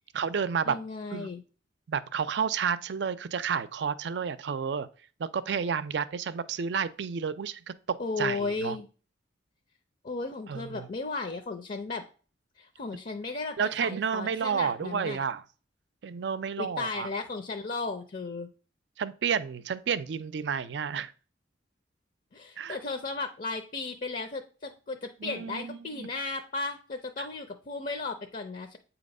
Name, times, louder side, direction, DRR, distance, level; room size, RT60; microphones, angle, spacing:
voice 1, 0.1-0.8 1.1-1.3 1.9-4.9 5.2-8.8 10.5-10.9 13.6-15.4 16.0-17.1 19.0-21.1 22.6-22.8 25.2-26.1 27.2-27.3, right 6 dB, 70° right, 0.4 m, -31 dB
voice 2, 0.7-1.4 8.0-8.9 10.0-12.0 12.6-15.2 16.6-18.5 22.3-28.8, left 3 dB, 45° left, 0.6 m, -35 dB
8.3 x 2.9 x 5.3 m
head